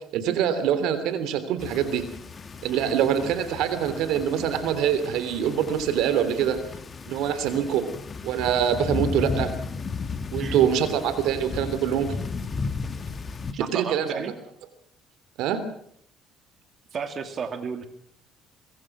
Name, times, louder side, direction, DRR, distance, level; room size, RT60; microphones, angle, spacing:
voice 1, 0.1-2.0 2.6-6.6 7.1-7.9 8.2-9.5 10.3-12.1 13.7-14.3 15.4-15.6, right 9 dB, 80° right, 12 dB, 3.0 m, -24 dB
sound 1, 1.6-13.5, left 4 dB, 30° left, 2.2 m, -34 dB
voice 2, 13.6-14.3 16.9-17.9, right 6 dB, 45° right, 7 dB, 2.7 m, -33 dB
24.5 x 22.5 x 6.1 m, 0.66 s
cardioid pair, 100°, 0 cm